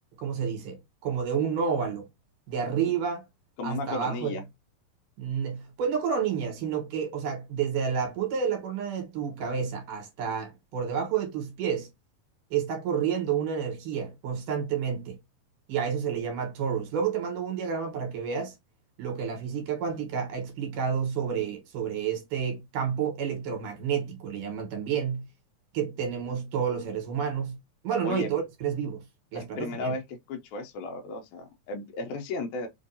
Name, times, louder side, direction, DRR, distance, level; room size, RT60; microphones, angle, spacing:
voice 1, 0.2-2.0 2.5-3.2 3.6-4.3 5.2-11.9 12.5-15.2 15.7-18.5 19.0-25.3 25.7-27.6 27.8-29.0 29.3-29.9, right 7 dB, 70° right, 2.7 m, -30 dB
voice 2, 3.6-4.4 28.0-28.3 29.3-30.0 30.3-32.7, left 3 dB, 75° left, 1.8 m, -34 dB
5.3 x 2.5 x 2.6 m
omnidirectional pair, 4.0 m